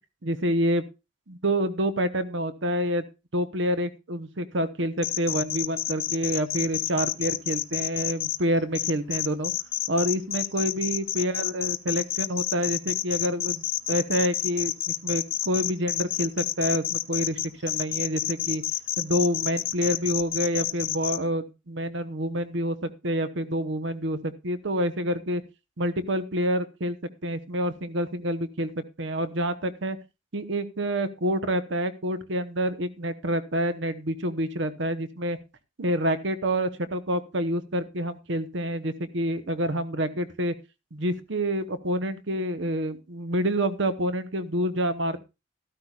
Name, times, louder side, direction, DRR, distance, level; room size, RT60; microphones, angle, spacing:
voice 1, 0.2-0.8 1.3-3.0 3.3-9.5 9.9-18.6 19.0-25.4 25.8-27.0 27.2-30.0 30.3-35.4 35.8-40.5 40.9-45.2, equal, 65° right, 12 dB, 0.9 m, -27 dB
sound 1, 5.0-8.4 8.8-21.2, left 13 dB, 75° left, 0.7 m, -29 dB
13.5 x 12.5 x 2.4 m, 0.27 s
head